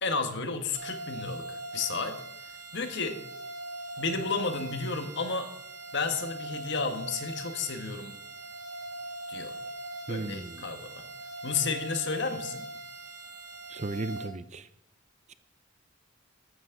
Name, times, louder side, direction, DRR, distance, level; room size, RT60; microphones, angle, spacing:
voice 1, 0.0-2.2 2.7-3.2 4.0-5.5 5.9-8.2 9.3-9.5 10.1-11.0 11.4-12.7, left 4 dB, 60° left, 1.5 m, -32 dB
sound 1, 0.7-14.2, right 1 dB, 60° right, 5.5 m, -41 dB
voice 2, 10.1-10.6 13.7-14.7, right 2 dB, 35° right, 0.6 m, -35 dB
14.0 x 13.0 x 3.8 m
head